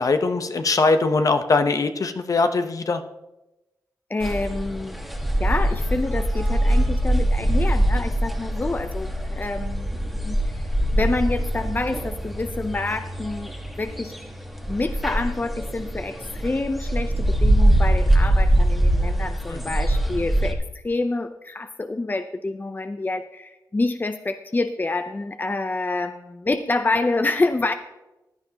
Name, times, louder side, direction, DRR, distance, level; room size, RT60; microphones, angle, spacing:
voice 1, 0.0-3.0 19.5-19.8, left 3 dB, 55° left, 8 dB, 0.9 m, -21 dB
voice 2, 4.1-5.0 5.4-10.6 10.9-14.1 14.7-20.6 20.8-27.7, left 2 dB, 25° left, 9 dB, 0.6 m, -27 dB
sound 1, 4.2-20.5, right 1 dB, ahead, 1.5 m, -23 dB
15.0 x 10.5 x 2.9 m, 0.97 s
cardioid pair, 60°, 7 cm